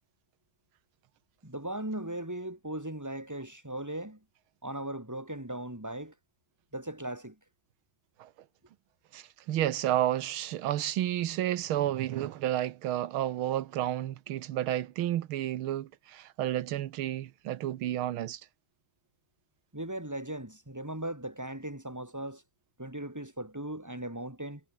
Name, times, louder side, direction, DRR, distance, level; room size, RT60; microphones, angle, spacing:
voice 1, 1.4-4.2 4.6-6.1 6.7-7.4 19.7-22.4 22.8-24.6, right 1 dB, 10° right, 4.1 m, -38 dB
voice 2, 9.1-18.4, right 12 dB, 85° right, 1.8 m, -31 dB
omnidirectional pair, 2.2 m